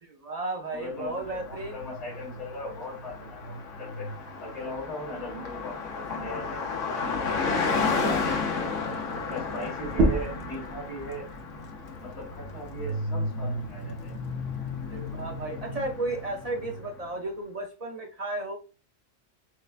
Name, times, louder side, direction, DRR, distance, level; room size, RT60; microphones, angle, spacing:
voice 1, 0.0-1.8 14.9-18.6, right 2 dB, 45° right, 0.5 m, -34 dB
voice 2, 0.7-4.1 4.4-8.8 9.1-11.3 11.9-14.1, equal, 65° left, 2.1 m, -39 dB
Car passing by, 1.0-17.1, left 3 dB, 90° left, 1.1 m, -33 dB
sound 1, 9.8-15.0, right 2 dB, 60° right, 1.0 m, -32 dB
6.3 x 2.2 x 2.4 m
omnidirectional pair, 1.2 m